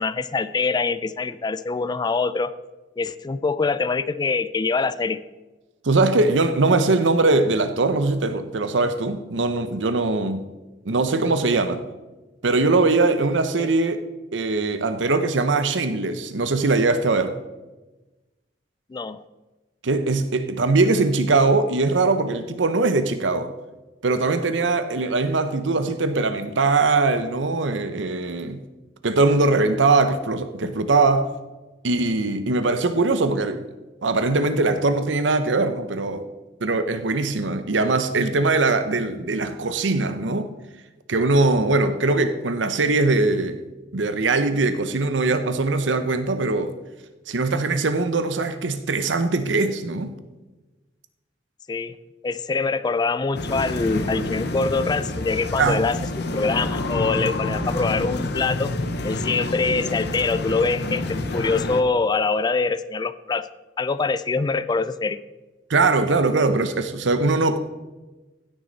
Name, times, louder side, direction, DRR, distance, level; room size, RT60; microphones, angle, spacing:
voice 1, 0.0-2.5 3.0-5.2 13.6-13.7 18.9-19.2 51.7-51.9 52.2-58.7 59.0-63.5 63.8-65.2, left 4 dB, 25° left, 0.3 m, -24 dB
voice 2, 5.8-10.5 10.8-11.8 12.4-14.0 14.3-17.4 19.8-23.5 24.0-28.6 29.0-31.3 31.8-33.7 34.0-36.3 36.6-40.5 41.1-43.6 43.9-46.7 47.3-50.2 55.6-56.0 65.7-67.6, right 3 dB, 90° right, 0.8 m, -21 dB
sound 1, 53.3-61.8, left 2 dB, 65° left, 0.8 m, -28 dB
16.0 x 6.4 x 4.0 m
head